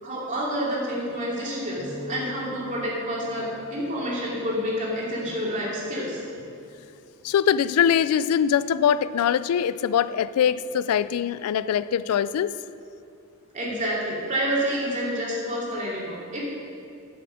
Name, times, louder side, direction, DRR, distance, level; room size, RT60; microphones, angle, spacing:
voice 1, 0.0-6.2 13.5-16.4, equal, 35° right, -5 dB, 2.7 m, -28 dB
sound 1, 1.8-5.2, left 2 dB, 50° right, 2.2 m, -41 dB
voice 2, 7.2-12.5, left 8 dB, 80° left, 16 dB, 0.3 m, -22 dB
10.0 x 7.0 x 6.4 m, 2.5 s
head